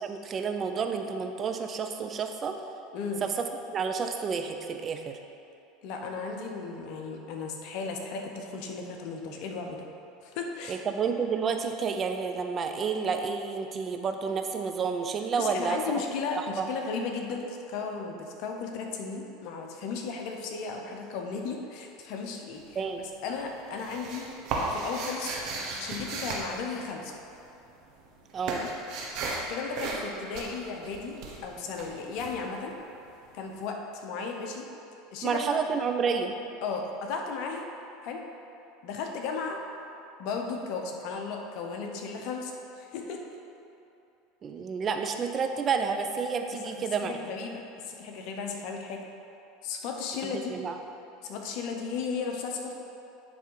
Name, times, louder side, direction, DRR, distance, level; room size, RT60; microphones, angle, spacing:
voice 1, 0.0-2.5 3.2-5.2 10.7-16.0 16.4-16.7 22.8-23.0 28.3-28.6 35.2-36.3 44.4-47.2 50.2-50.8, right 5 dB, 35° right, 5 dB, 0.6 m, -30 dB
voice 2, 5.8-9.9 10.2-10.8 15.3-22.8 23.2-24.3 24.7-25.3 25.8-27.1 28.6-28.7 29.5-32.8 33.3-34.7 35.1-35.5 36.6-37.7 38.0-38.2 38.8-39.6 40.2-43.2 46.5-49.0 49.6-50.5 51.2-52.7, left 5 dB, 60° left, 2 dB, 0.9 m, -35 dB
sound 1, 22.5-23.1 23.4-27.4 27.7-33.3, right 3 dB, 60° right, 1.3 m, -35 dB
10.5 x 3.5 x 4.8 m, 2.8 s
hypercardioid pair, 95°, 0 cm